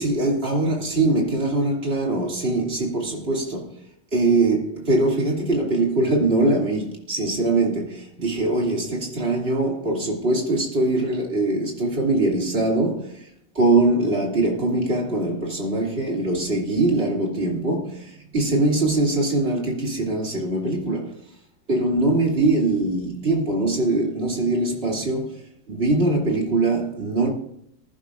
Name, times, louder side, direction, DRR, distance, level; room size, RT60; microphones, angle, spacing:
voice 1, 0.0-3.8 4.1-21.2 21.7-27.3, right 2 dB, 30° right, 2.8 m, -22 dB
20.0 x 11.0 x 2.5 m
omnidirectional pair, 2.1 m